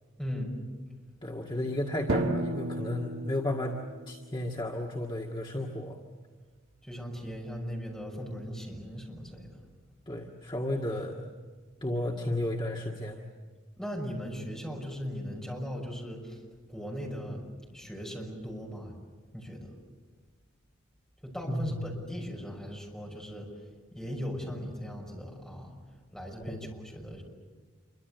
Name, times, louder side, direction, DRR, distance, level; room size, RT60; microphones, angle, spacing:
voice 1, 0.2-0.5 6.8-9.5 13.8-16.4 16.7-18.9 19.3-19.8 21.2-23.5 23.9-25.8 26.1-27.2, equal, 5° left, -1 dB, 6.2 m, -38 dB
voice 2, 1.2-3.8 4.1-6.0 10.1-11.1 11.8-13.2 21.5-21.9 26.5-26.6, left 1 dB, 25° left, 0 dB, 1.8 m, -33 dB
Drum, 2.1-4.6, right 1 dB, 90° right, 1.4 m, -33 dB
27.5 x 24.5 x 8.0 m, 1.5 s
head